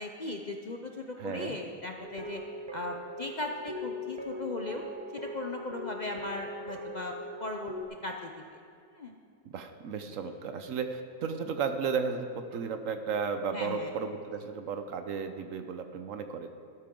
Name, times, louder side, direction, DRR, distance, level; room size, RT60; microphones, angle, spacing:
voice 1, 0.0-2.4 2.7-4.8 5.1-7.1 7.4-7.7 8.0-8.3 8.9-9.2 13.5-13.9, left 2 dB, 70° left, 2 dB, 0.4 m, -37 dB
voice 2, 1.2-1.6 9.5-16.5, right 5 dB, 65° right, 8 dB, 0.9 m, -34 dB
sound 1, 2.0-7.8, left 1 dB, 20° right, 0.8 m, -40 dB
13.0 x 12.5 x 3.7 m, 2.4 s
omnidirectional pair, 1.7 m